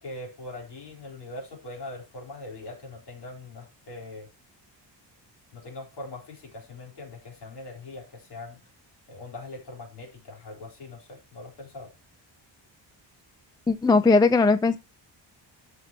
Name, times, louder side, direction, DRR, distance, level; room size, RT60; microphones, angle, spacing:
voice 1, 0.0-4.3 5.5-8.6 9.1-11.9, left 2 dB, 60° left, 4.3 m, -41 dB
voice 2, 13.7-14.8, left 3 dB, 10° left, 0.5 m, -19 dB
13.0 x 5.9 x 3.0 m
wide cardioid pair, 140°, 44 cm